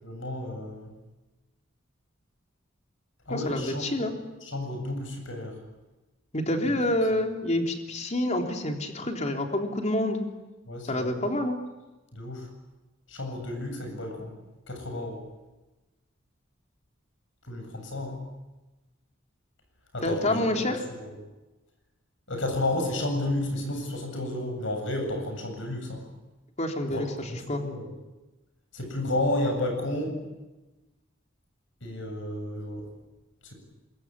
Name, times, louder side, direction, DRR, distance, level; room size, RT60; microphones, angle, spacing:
voice 1, 0.0-0.9 3.3-3.9 4.4-5.6 6.6-6.8 10.7-11.2 12.1-12.5 13.1-14.3 14.7-15.2 17.5-18.2 19.9-20.6 20.9-21.1 22.3-26.0 26.9-27.9 28.7-30.2 31.8-32.9 33.4-33.5, left 1 dB, 70° left, 4 dB, 7.9 m, -32 dB
voice 2, 3.3-4.1 6.3-10.2 10.9-11.6 20.0-20.8 26.6-27.6, left 1 dB, 35° left, 4 dB, 3.6 m, -28 dB
26.5 x 22.5 x 9.8 m, 1.1 s
head